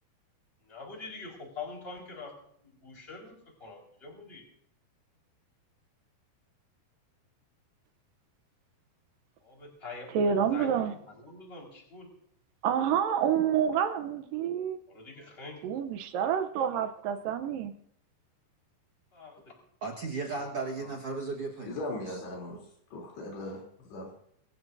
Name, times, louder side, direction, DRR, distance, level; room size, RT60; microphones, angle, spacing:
voice 1, 0.6-2.3 2.6-3.3 3.6-4.4 9.4-10.2 10.5-12.1 14.9-15.6 19.1-19.5 20.3-20.4 20.8-21.0, left 4 dB, 15° left, 0 dB, 4.4 m, -45 dB
voice 2, 10.1-10.9 12.6-14.8 15.6-17.7, right 8 dB, 75° right, 9 dB, 2.1 m, -28 dB
voice 3, 19.8-21.8 22.0-22.2, right 3 dB, 55° right, 1 dB, 1.7 m, -35 dB
voice 4, 21.7-22.6 22.9-23.6 23.9-24.1, left 1 dB, 75° left, -2 dB, 5.5 m, -38 dB
25.5 x 15.0 x 2.7 m, 0.68 s
omnidirectional pair, 4.9 m